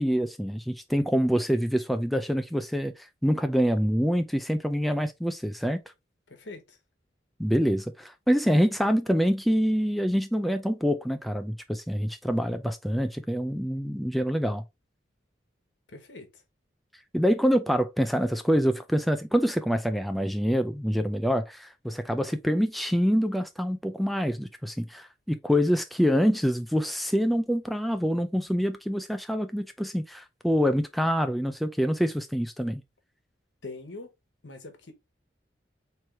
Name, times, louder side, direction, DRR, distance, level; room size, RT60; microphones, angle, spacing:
voice 1, 0.0-2.9 3.2-5.8 7.4-14.6 17.1-32.8, equal, ahead, 0.3 m, -26 dB
voice 2, 6.3-6.8 15.9-16.4 33.6-34.1 34.4-34.9, left 3 dB, 85° left, 1.2 m, -43 dB
4.6 x 3.1 x 3.4 m
head